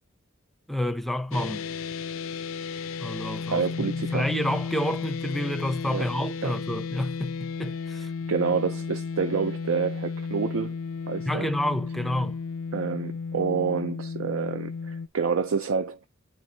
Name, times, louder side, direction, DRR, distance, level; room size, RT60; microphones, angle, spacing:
voice 1, 0.7-1.7 3.0-8.1 11.3-12.4, left 1 dB, ahead, 0.5 m, -29 dB
sound 1, 1.3-15.1, left 5 dB, 75° left, 0.4 m, -34 dB
voice 2, 3.5-4.3 5.8-6.1 6.4-6.6 8.0-10.8 11.1-11.5 12.7-16.1, right 5 dB, 80° right, 0.5 m, -28 dB
9.0 x 4.6 x 2.7 m
head